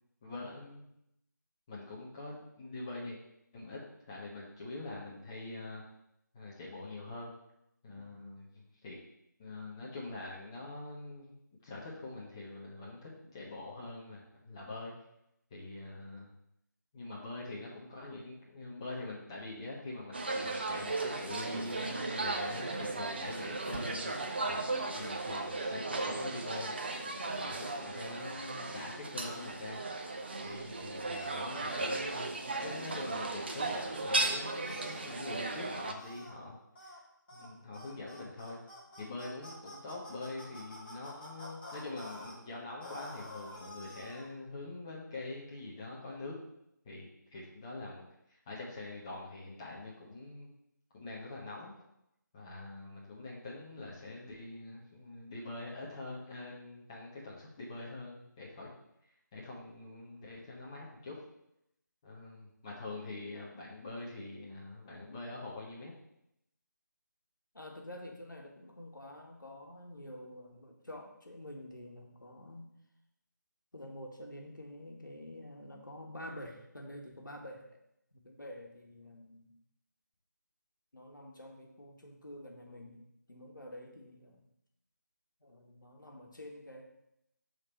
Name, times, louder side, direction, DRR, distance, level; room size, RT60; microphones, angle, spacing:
voice 1, 0.2-0.8 1.7-3.2 3.5-3.8 4.1-5.8 6.3-7.3 7.8-9.0 9.4-11.4 11.6-14.9 15.5-16.3 16.9-26.7 27.2-29.8 30.4-36.6 36.8-36.9 37.3-38.6 39.0-46.4 46.8-48.0 48.3-50.5 50.9-51.7 52.3-58.7 59.3-61.2 62.0-65.9, left 2 dB, 15° left, -4 dB, 0.6 m, -44 dB
sound 1, 20.1-35.9, right 2 dB, 30° right, 0.4 m, -36 dB
sound 2, 34.6-35.2 36.0-36.3 36.7-37.0 37.3-37.5 37.7-42.3 42.8-44.3, left 1 dB, 30° left, 1.2 m, -49 dB
voice 2, 67.5-72.7 73.7-77.7 78.1-79.5 80.9-84.4 85.4-86.8, left 1 dB, 75° left, 1 dB, 1.3 m, -48 dB
6.4 x 3.6 x 4.2 m, 0.80 s
figure-of-eight pair, 160°, 10 cm